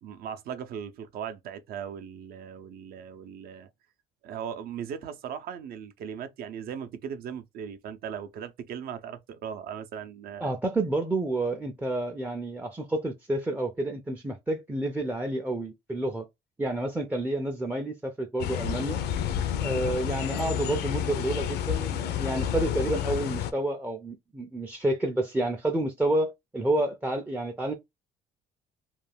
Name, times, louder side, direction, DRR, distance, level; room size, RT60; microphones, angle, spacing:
voice 1, 0.0-3.7 4.2-10.5, right 8 dB, 65° right, 0.5 m, -38 dB
voice 2, 10.4-16.3 16.6-19.0 19.6-27.7, right 1 dB, 10° right, 0.4 m, -29 dB
sound 1, 18.4-23.5, left 10 dB, 75° left, 0.5 m, -30 dB
2.4 x 2.2 x 3.3 m
cardioid pair, 110°, 17 cm